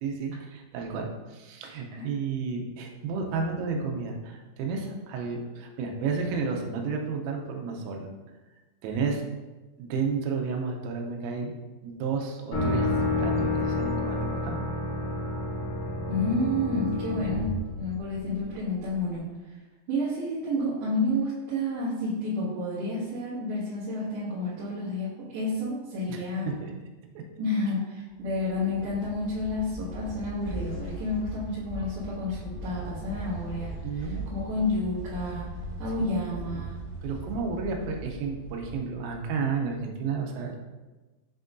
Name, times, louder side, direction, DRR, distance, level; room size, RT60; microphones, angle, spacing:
voice 1, 0.0-8.1 8.8-9.2 9.8-11.5 11.8-12.9 13.2-14.6 26.1-26.7 33.8-34.2 36.0-36.7 37.0-40.6, right 5 dB, 85° right, 2 dB, 3.4 m, -32 dB
sound 1, 12.5-18.4, left 2 dB, 60° left, 2.0 m, -29 dB
voice 2, 16.1-19.6 19.9-26.5 27.4-34.0 34.3-35.5 35.8-36.8, left 1 dB, 65° right, -13 dB, 3.7 m, -30 dB
sound 2, 28.2-39.2, right 1 dB, 80° left, 4.4 m, -39 dB
10.5 x 3.7 x 2.6 m, 1.2 s
omnidirectional pair, 5.9 m